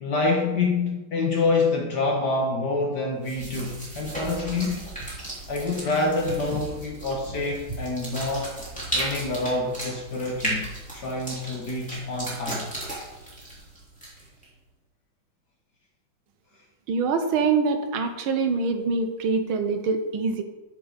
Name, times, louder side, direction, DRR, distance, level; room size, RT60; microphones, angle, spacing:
voice 1, 0.0-4.9 5.5-8.6 8.9-12.7, left 3 dB, 60° left, 1 dB, 1.7 m, -27 dB
sound 1, 3.2-14.4, right 1 dB, 5° left, 2.9 m, -35 dB
voice 2, 16.9-20.4, right 4 dB, 80° right, 7 dB, 1.8 m, -24 dB
13.5 x 5.2 x 5.2 m, 1.1 s
omnidirectional pair, 2.2 m